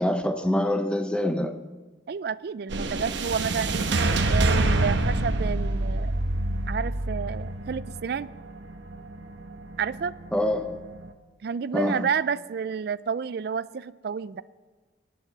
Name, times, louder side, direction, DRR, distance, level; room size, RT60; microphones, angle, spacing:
voice 1, 0.0-1.6 10.3-10.8 11.7-12.1, left 1 dB, 5° left, 0.6 m, -25 dB
voice 2, 2.1-3.9 4.3-6.1 6.7-8.3 9.8-10.1 11.4-14.4, right 6 dB, 55° right, 0.3 m, -30 dB
sound 1, 2.7-11.1, right 2 dB, 70° right, 1.0 m, -27 dB
18.5 x 11.0 x 4.0 m
head